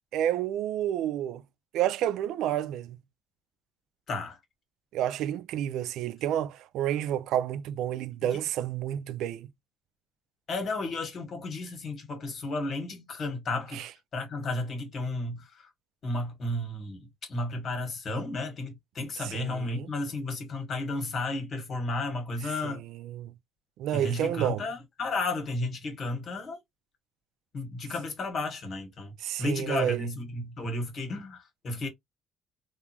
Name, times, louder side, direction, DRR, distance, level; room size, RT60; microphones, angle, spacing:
voice 1, 0.1-1.4 1.7-3.0 4.9-9.5 13.7-13.9 19.2-19.9 22.6-23.3 23.8-24.6 29.2-30.1, right 11 dB, 80° right, 0.3 m, -30 dB
voice 2, 4.1-4.4 10.5-13.8 14.1-15.7 16.0-22.8 23.9-26.6 27.5-31.9, left 2 dB, 50° left, 1.5 m, -33 dB
3.6 x 2.4 x 2.9 m
cardioid pair, 115°, 0 cm